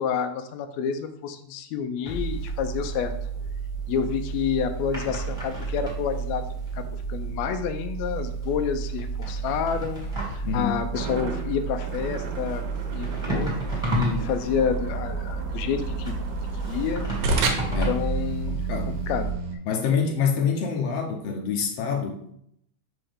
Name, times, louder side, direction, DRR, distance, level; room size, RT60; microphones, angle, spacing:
voice 1, 0.0-3.1 3.9-6.5 6.7-12.6 12.9-16.2 16.6-17.1 17.9-18.6 18.9-19.3, left 7 dB, 85° left, 7 dB, 1.6 m, -29 dB
sound 1, 2.0-19.3, right 3 dB, ahead, 1.2 m, -31 dB
voice 2, 10.4-10.7 17.7-18.0 18.5-19.0 19.7-22.2, left 6 dB, 70° left, 3 dB, 1.6 m, -26 dB
sound 2, 10.9-19.6, right 3 dB, 85° right, 2.4 m, -33 dB
5.7 x 5.2 x 3.5 m, 0.70 s
omnidirectional pair, 3.6 m